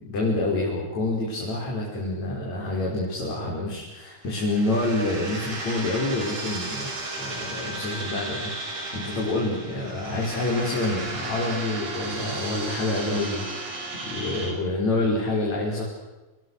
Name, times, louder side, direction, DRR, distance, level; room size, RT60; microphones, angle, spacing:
voice 1, 0.0-6.9 7.2-13.4 14.0-15.8, left 2 dB, 65° left, -3 dB, 6.5 m, -27 dB
sound 1, 4.2-14.5, right 2 dB, 80° right, 7.1 m, -34 dB
29.5 x 28.5 x 6.6 m, 1.1 s
omnidirectional pair, 3.4 m